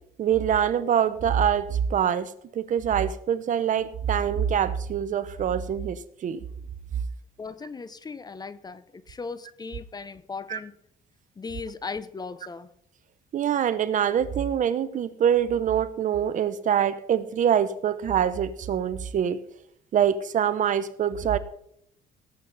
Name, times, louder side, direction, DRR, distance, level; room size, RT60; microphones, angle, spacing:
voice 1, 0.2-6.4 10.5-10.6 13.3-19.4 19.9-21.4, right 9 dB, 50° right, 14 dB, 0.9 m, -24 dB
voice 2, 7.4-10.7 11.4-12.7, left 4 dB, 25° left, 15 dB, 0.8 m, -37 dB
18.0 x 8.3 x 4.1 m, 0.71 s
cardioid pair, 110°, 17 cm